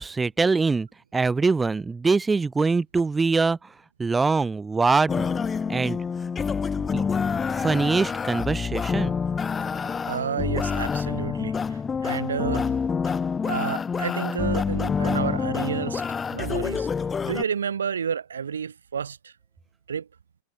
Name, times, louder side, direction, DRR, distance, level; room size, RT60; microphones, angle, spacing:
voice 1, 0.0-3.6 4.0-5.3 5.7-6.0 6.9-7.0 7.5-9.1, right 4 dB, 10° right, 1.3 m, -23 dB
sound 1, 5.1-17.4, left 6 dB, 15° left, 2.0 m, -27 dB
voice 2, 10.1-12.7 13.4-16.9 17.2-19.3 19.9-20.1, right 7 dB, 70° right, 4.4 m, -30 dB
figure-of-eight pair, 90°, 0 cm